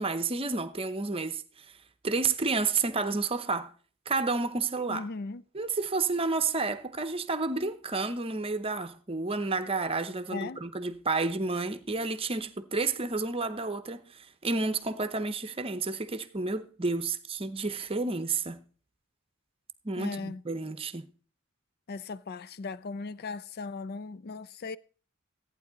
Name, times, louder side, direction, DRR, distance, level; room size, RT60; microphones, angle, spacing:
voice 1, 0.0-1.4 2.0-3.7 4.1-5.1 5.5-18.6 19.8-21.1, right 3 dB, 25° right, 0.8 m, -30 dB
voice 2, 4.9-5.4 10.3-10.6 20.0-20.4 21.9-24.8, left 4 dB, 45° left, 0.4 m, -38 dB
14.0 x 9.0 x 4.0 m
head